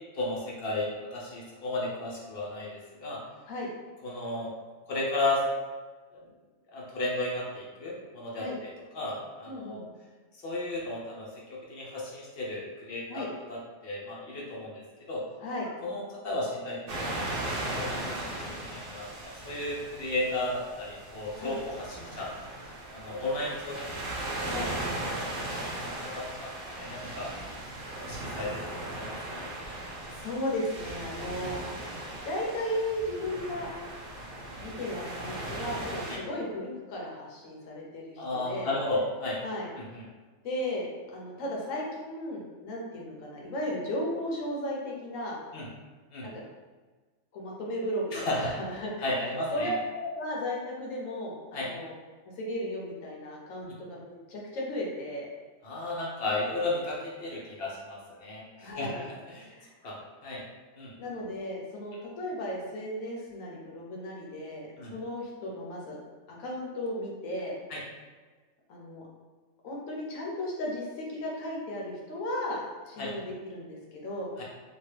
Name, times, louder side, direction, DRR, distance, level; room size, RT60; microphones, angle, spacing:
voice 1, 0.1-3.2 4.0-4.5 4.9-5.4 6.1-6.2 6.7-8.7 8.9-9.8 10.4-15.2 15.8-22.3 22.9-24.0 24.2-24.5 25.1-27.3 28.0-29.4 36.1-36.2 38.2-39.4 39.8-40.0 45.5-45.7 46.1-46.3 48.1-48.5 49.0-49.7 51.5-51.7 53.6-53.7 55.6-59.5 59.8-60.4 60.8-60.9 64.8-64.9 67.7-67.8 73.0-73.1 74.4-74.5, left 2 dB, 60° left, -4 dB, 0.7 m, -34 dB
voice 2, 9.4-9.9 13.1-13.3 15.4-15.7 21.4-21.6 24.4-24.7 30.1-31.8 32.2-33.7 34.6-38.7 39.4-39.7 40.4-45.4 46.2-46.4 47.3-48.9 49.5-51.9 52.4-55.3 58.6-59.0 59.4-59.7 61.0-66.0 66.4-67.5 68.7-69.0 69.6-74.3, left 1 dB, 85° left, -2 dB, 1.1 m, -35 dB
sound 1, 16.9-36.2, right 1 dB, 55° right, 0.7 m, -38 dB
2.9 x 2.3 x 3.2 m, 1.4 s
omnidirectional pair, 1.3 m